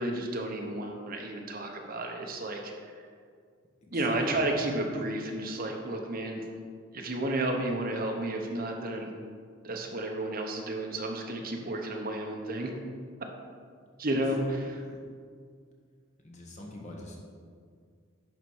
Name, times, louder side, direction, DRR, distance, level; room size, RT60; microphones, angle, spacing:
voice 1, 0.0-3.0 3.9-6.5 6.9-9.1 9.6-12.7 14.0-14.8, right 1 dB, 45° right, 1 dB, 1.0 m, -32 dB
voice 2, 3.8-4.3 14.4-15.0 16.2-17.2, left 1 dB, 35° left, -1 dB, 1.2 m, -46 dB
11.0 x 4.1 x 4.7 m, 2.1 s
head